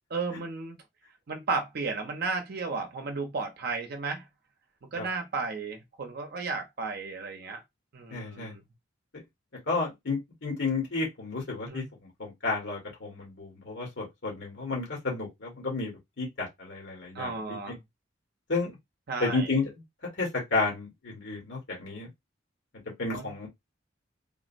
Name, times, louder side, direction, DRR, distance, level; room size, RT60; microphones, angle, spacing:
voice 1, 0.1-0.8 1.3-4.2 4.9-7.6 7.9-8.6 11.7-11.9 17.1-17.8 19.1-19.5 23.1-23.3, right 4 dB, 55° right, 0.6 m, -33 dB
voice 2, 8.1-8.5 9.7-11.8 12.2-17.6 18.5-18.8 19.2-19.7 20.2-22.1 23.0-23.5, left 3 dB, 70° left, 1.5 m, -31 dB
3.6 x 2.0 x 2.5 m
head